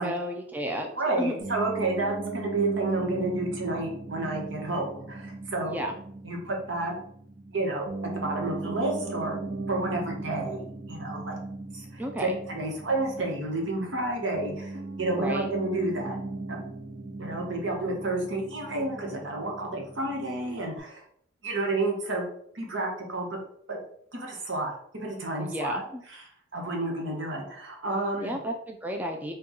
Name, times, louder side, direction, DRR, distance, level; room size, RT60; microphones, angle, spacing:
voice 1, 0.0-0.9 1.2-1.3 5.6-6.0 12.0-12.4 15.1-15.5 25.4-26.0 28.2-29.3, equal, 10° right, 2 dB, 0.4 m, -32 dB
voice 2, 1.0-5.8 6.2-6.9 7.5-7.9 8.1-9.4 9.7-11.4 11.7-16.2 16.5-16.6 17.2-21.0 21.4-22.2 22.5-23.3 23.7-23.8 24.1-25.8 26.5-28.3, right 2 dB, 75° right, 0 dB, 1.1 m, -30 dB
Piano, 1.4-20.8, right 2 dB, 55° right, 0.8 m, -38 dB
4.4 x 2.3 x 3.7 m, 0.65 s
head